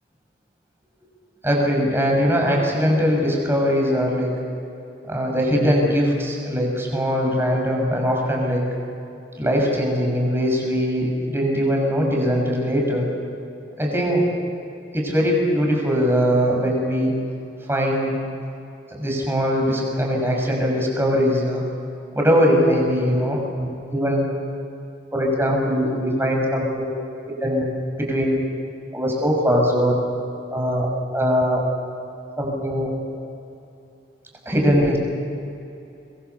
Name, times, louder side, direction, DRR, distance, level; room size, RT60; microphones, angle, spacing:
voice 1, 1.4-4.3 5.1-8.7 9.4-13.1 13.8-14.3 14.9-17.1 17.7-18.2 18.9-21.6 22.1-24.2 25.1-27.0 27.4-27.7 28.0-28.4 28.9-30.0 30.5-31.6 32.4-32.9 34.4-35.0, equal, 15° right, 0 dB, 6.4 m, -21 dB
26.0 x 22.5 x 7.1 m, 2.8 s
head